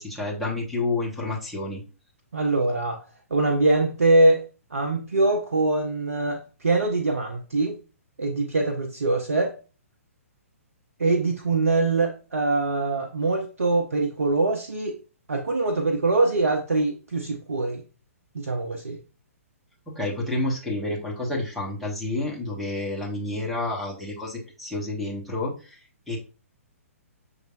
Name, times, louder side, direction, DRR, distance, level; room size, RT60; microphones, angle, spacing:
voice 1, 0.0-1.8 19.9-25.8 26.1-26.2, left 2 dB, ahead, 1.2 m, -29 dB
voice 2, 2.3-3.0 3.3-4.4 4.7-7.8 8.2-9.6 11.0-15.0 15.3-17.8 18.3-19.0, right 2 dB, 70° right, 0.6 m, -23 dB
6.7 x 3.2 x 2.5 m
figure-of-eight pair, 125°, 8 cm